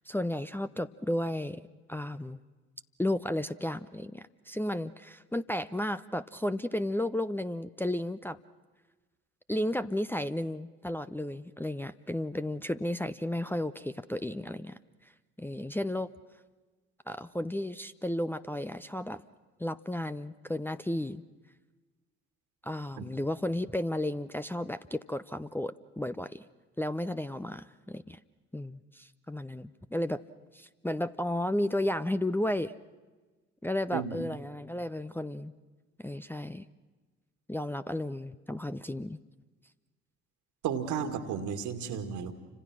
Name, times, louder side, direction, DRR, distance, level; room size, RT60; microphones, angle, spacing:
voice 1, 0.1-1.6 1.9-2.4 3.0-8.4 9.5-14.8 15.4-16.1 17.1-19.2 19.6-21.2 22.6-26.5 26.8-28.2 28.5-30.2 30.5-32.7 33.6-35.5 36.0-36.6 37.5-39.2, left 1 dB, 5° left, 9 dB, 0.7 m, -33 dB
voice 2, 40.6-42.3, right 7 dB, 65° right, 9 dB, 2.2 m, -33 dB
30.0 x 26.0 x 6.2 m, 1.3 s
figure-of-eight pair, 45°, 33 cm